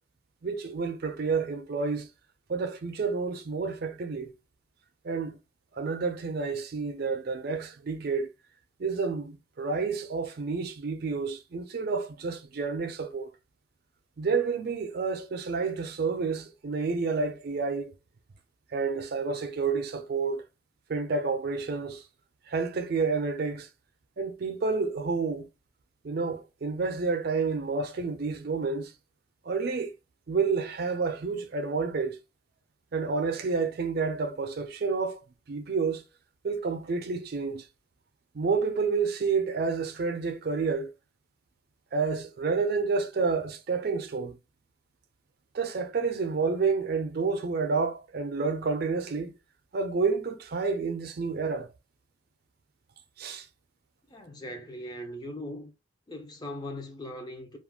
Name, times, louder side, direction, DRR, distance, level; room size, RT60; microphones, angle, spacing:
voice 1, 0.4-2.1 2.5-4.3 5.0-5.4 5.8-8.3 8.8-13.3 14.2-17.9 18.7-20.4 20.9-22.0 22.5-23.7 24.2-25.5 26.0-28.9 29.4-29.9 30.3-32.2 32.9-36.0 36.4-37.6 38.3-40.9 41.9-44.4 45.5-49.3 49.7-51.7 53.2-53.5, right 4 dB, 55° right, 0.4 m, -29 dB
voice 2, 54.1-55.7 56.1-57.6, left 1 dB, 20° left, 0.4 m, -39 dB
2.4 x 2.1 x 3.3 m
head